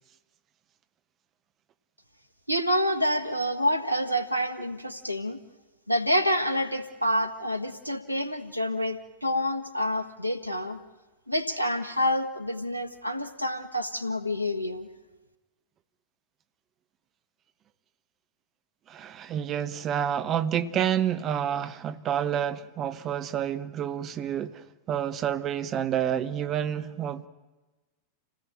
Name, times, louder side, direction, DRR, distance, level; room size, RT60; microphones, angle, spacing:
voice 1, 2.5-5.4 5.9-10.8 11.3-14.9, equal, 90° right, 1.4 m, -28 dB
voice 2, 18.9-27.3, right 9 dB, 30° right, 1.1 m, -29 dB
28.0 x 18.0 x 9.1 m
figure-of-eight pair, 90°, 0 cm